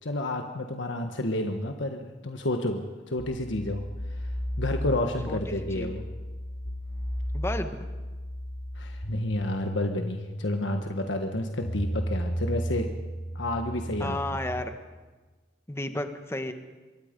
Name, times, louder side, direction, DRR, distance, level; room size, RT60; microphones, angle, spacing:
voice 1, 0.0-3.8 4.6-6.0 8.8-12.9 13.3-14.2, left 1 dB, 85° left, 4 dB, 1.4 m, -30 dB
sound 1, 3.2-14.6, equal, 60° left, 7.2 m, -34 dB
voice 2, 5.3-5.9 7.3-7.8 14.0-14.7 15.7-16.5, left 1 dB, 15° left, 7 dB, 1.4 m, -32 dB
25.5 x 22.5 x 5.3 m, 1.3 s
head